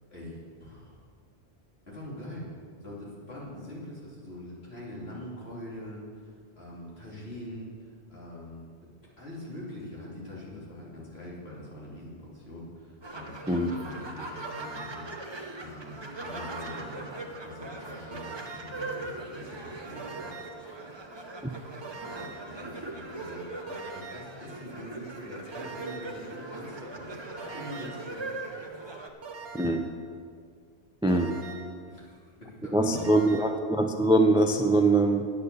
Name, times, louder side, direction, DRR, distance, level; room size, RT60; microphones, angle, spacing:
voice 1, 0.1-1.0 1.9-2.5 2.8-8.6 9.2-17.1 17.4-20.9 21.9-28.4 31.9-33.1, left 1 dB, 70° left, -6 dB, 3.3 m, -43 dB
sound 1, 13.0-29.1, right 2 dB, 25° right, 0.9 m, -40 dB
sound 2, 14.4-15.1 16.3-17.0 18.1-18.8 20.0-20.7 21.8-22.5 23.7-24.4 25.5-26.2 27.4-28.1 29.2-30.0 31.1-31.8 32.9-33.7, right 4 dB, 65° right, 1.4 m, -43 dB
voice 2, 29.5-29.9 31.0-31.4 32.7-35.3, right 2 dB, 5° right, 6 dB, 0.4 m, -23 dB
9.9 x 8.3 x 6.9 m, 2.1 s
omnidirectional pair, 1.1 m